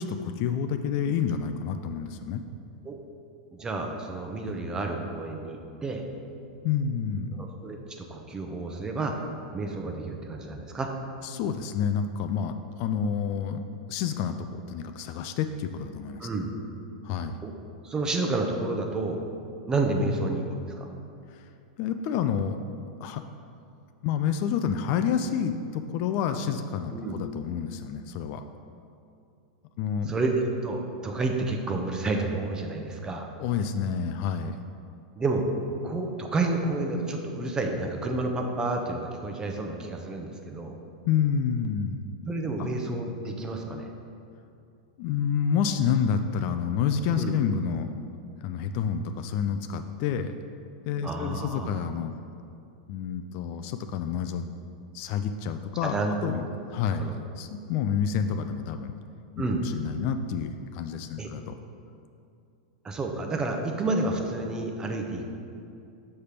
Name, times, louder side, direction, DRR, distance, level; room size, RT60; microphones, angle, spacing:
voice 1, 0.0-2.4 4.5-4.6 6.6-7.4 11.2-13.6 13.9-16.3 17.0-17.3 20.0-20.2 21.3-21.5 21.8-22.6 23.0-23.2 24.0-28.4 29.8-30.1 33.4-34.6 41.1-42.1 42.6-42.7 45.0-47.9 48.4-50.3 50.8-52.1 52.9-54.5 54.9-55.9 56.2-58.9 59.4-59.5 59.7-61.5, left 7 dB, 50° left, 8 dB, 0.3 m, -29 dB
voice 2, 3.5-6.0 7.4-9.2 9.5-10.9 16.2-16.5 17.4-17.5 17.8-19.2 19.7-20.4 20.8-20.9 26.9-27.2 30.1-33.3 35.2-35.4 35.8-40.8 42.3-43.9 47.2-47.3 51.0-51.7 55.8-56.1 57.0-57.1 59.4-59.6 61.2-61.3 62.8-65.2, right 2 dB, 15° right, 3 dB, 0.7 m, -30 dB
6.6 x 3.3 x 5.7 m, 2.6 s
hypercardioid pair, 125°, 4 cm